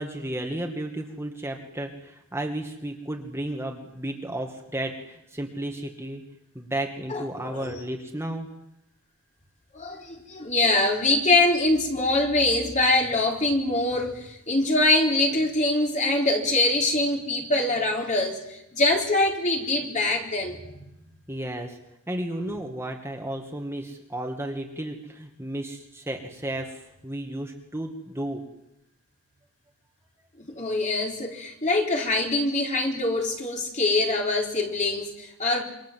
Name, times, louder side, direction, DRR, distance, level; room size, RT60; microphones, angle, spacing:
voice 1, 0.0-6.2 6.5-8.5 21.3-21.8 22.1-28.4, right 1 dB, 10° right, 2 dB, 2.1 m, -33 dB
voice 2, 7.1-7.8 9.7-20.8 30.4-35.6, left 2 dB, 35° left, 1 dB, 4.3 m, -24 dB
27.5 x 24.5 x 7.7 m, 0.86 s
head